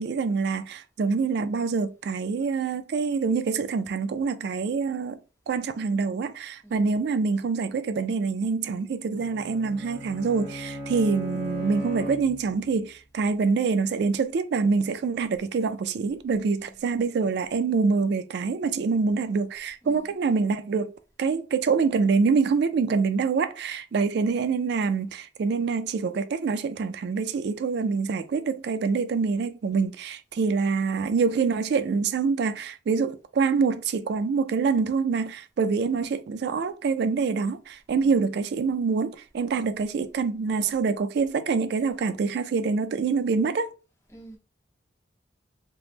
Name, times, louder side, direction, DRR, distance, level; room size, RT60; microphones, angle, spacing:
voice 1, 0.0-5.2 5.5-20.9 21.2-43.7, right 5 dB, 60° right, 0.3 m, -25 dB
Bowed string instrument, 9.2-12.8, left 1 dB, 10° right, 1.0 m, -37 dB
voice 2, 19.8-20.1 23.9-24.1 38.0-38.2 44.1-44.4, right 1 dB, 15° left, 0.8 m, -49 dB
3.4 x 2.0 x 2.8 m
head